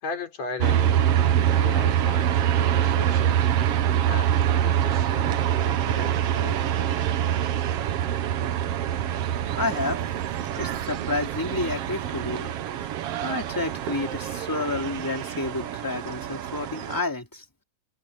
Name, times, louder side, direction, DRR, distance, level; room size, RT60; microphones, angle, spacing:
voice 1, 0.0-3.4 4.1-6.8, left 4 dB, 55° left, 5.5 m, -38 dB
sound 1, 0.6-17.0, right 10 dB, 65° right, 1.6 m, -25 dB
voice 2, 9.6-10.0 10.5-12.9 13.2-17.4, left 2 dB, 5° left, 2.8 m, -30 dB
omnidirectional pair, 3.7 m